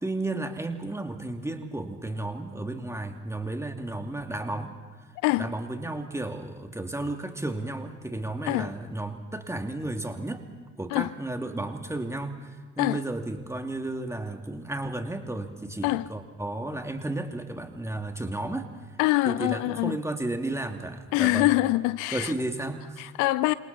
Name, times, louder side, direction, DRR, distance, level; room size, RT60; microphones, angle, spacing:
voice 1, 0.0-4.7 5.3-10.5 10.8-18.7 19.3-21.5 22.1-23.0, right 2 dB, 10° right, 2.5 m, -33 dB
voice 2, 19.0-20.0 21.1-22.3 23.0-23.5, left 20 dB, 60° left, 0.6 m, -24 dB
29.5 x 27.0 x 4.2 m
figure-of-eight pair, 55°, 35 cm